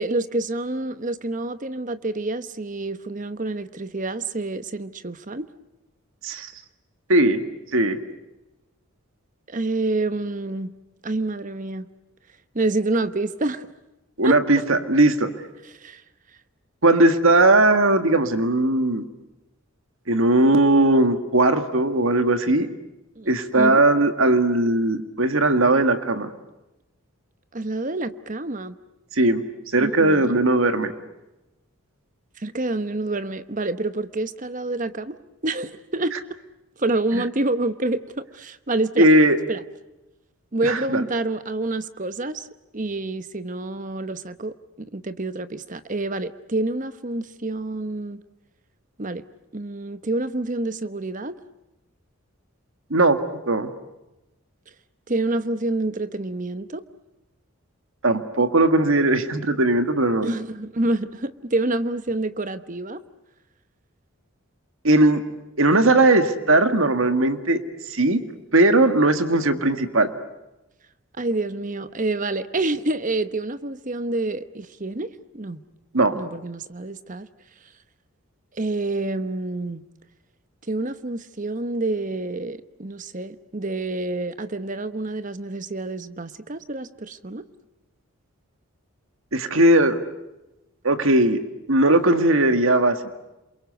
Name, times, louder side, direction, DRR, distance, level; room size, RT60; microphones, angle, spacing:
voice 1, 0.0-5.5 9.5-10.7 11.0-11.9 12.5-13.7 14.2-14.3 15.8-16.0 23.2-23.8 27.5-28.8 29.8-30.3 32.4-35.2 35.4-36.1 36.8-39.1 39.5-39.6 40.5-42.5 42.7-48.2 49.0-49.2 49.5-51.3 55.1-56.8 60.2-63.0 71.2-75.6 76.2-77.3 78.6-79.9 80.7-87.4, right 2 dB, 35° right, 12 dB, 1.0 m, -27 dB
voice 2, 7.1-7.4 7.7-8.0 14.2-15.3 16.8-19.0 20.1-22.7 23.3-26.3 29.1-29.4 29.7-30.9 37.1-37.2 39.0-39.4 40.6-41.0 52.9-53.2 53.5-53.7 58.0-60.3 64.8-65.2 65.6-67.6 67.9-68.2 68.5-70.1 75.9-76.2 89.3-90.0 90.8-91.4 91.7-93.0, right 2 dB, 65° right, 9 dB, 1.8 m, -18 dB
28.0 x 23.0 x 8.0 m, 0.98 s
head